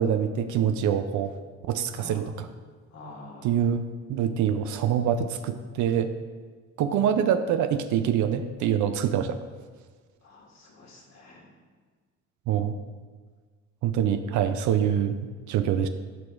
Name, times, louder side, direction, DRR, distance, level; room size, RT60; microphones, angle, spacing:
voice 1, 0.0-1.3 1.7-2.5 3.4-6.1 6.8-9.4 12.5-12.7 13.8-15.9, right 9 dB, 75° right, 9 dB, 0.4 m, -25 dB
voice 2, 1.9-2.4 2.9-3.6 10.2-11.5, left 2 dB, 60° left, -1 dB, 1.6 m, -46 dB
12.5 x 4.9 x 2.4 m, 1.5 s
cardioid pair, 90°, 30 cm